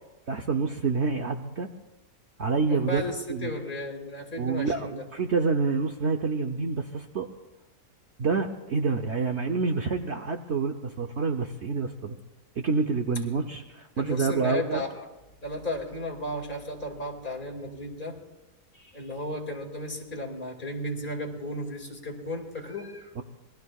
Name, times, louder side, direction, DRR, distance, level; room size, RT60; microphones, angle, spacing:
voice 1, 0.3-1.7 2.4-3.0 3.3-3.5 4.4-7.3 8.2-12.2 12.6-14.8 23.2-23.3, right 4 dB, 55° right, 4 dB, 1.0 m, -27 dB
voice 2, 2.7-5.0 14.0-14.9 15.4-18.1 18.8-23.1, left 1 dB, 30° left, 1 dB, 2.4 m, -34 dB
27.5 x 21.0 x 2.3 m, 1.0 s
omnidirectional pair, 1.6 m